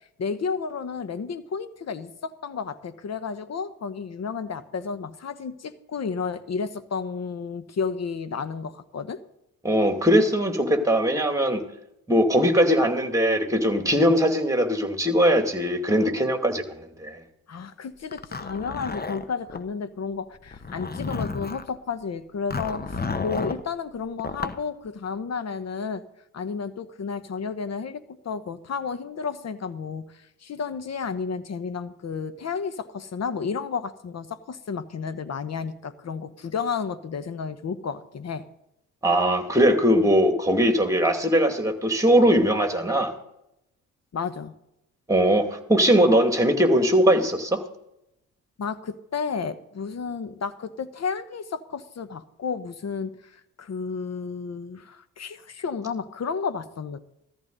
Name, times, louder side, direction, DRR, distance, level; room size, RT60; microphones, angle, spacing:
voice 1, 0.2-9.2 17.5-26.0 26.3-38.5 44.1-44.5 48.6-57.0, left 5 dB, 45° left, 13 dB, 1.1 m, -32 dB
voice 2, 9.6-11.6 12.1-17.2 39.0-43.1 45.1-47.6, equal, 10° right, 5 dB, 2.5 m, -20 dB
Zipper (clothing), 18.1-19.6 20.5-21.7 22.5-23.6 24.2-24.6, left 4 dB, 25° left, 1.1 m, -31 dB
14.0 x 14.0 x 4.0 m, 0.83 s
hypercardioid pair, 45°, 37 cm